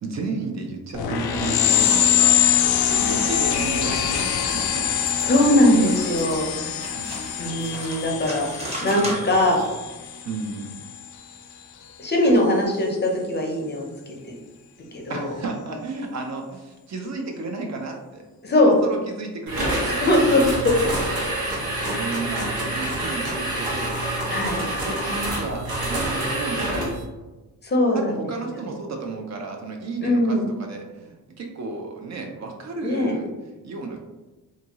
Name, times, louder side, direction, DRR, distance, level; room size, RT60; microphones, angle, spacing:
voice 1, 0.0-4.9 6.9-7.3 8.8-9.3 10.2-10.7 15.1-18.2 18.6-20.0 20.6-20.8 21.9-24.0 24.8-26.9 27.9-33.3 33.6-34.0, right 3 dB, 45° right, 2 dB, 0.5 m, -33 dB
sound 1, 0.9-11.1, left 9 dB, 80° left, 0.5 m, -24 dB
sound 2, 3.7-9.7, right 1 dB, 15° right, 0.8 m, -37 dB
voice 2, 5.2-6.9 7.4-9.6 12.0-14.1 14.9-15.3 18.4-18.8 19.8-20.8 21.7-21.9 24.3-24.6 27.6-28.1 30.0-30.4 32.8-33.1, left 1 dB, 30° left, -1 dB, 0.6 m, -21 dB
sound 3, 19.5-27.0, right 1 dB, 70° right, 1.1 m, -27 dB
2.7 x 2.5 x 2.9 m, 1.1 s
cardioid pair, 100°, 37 cm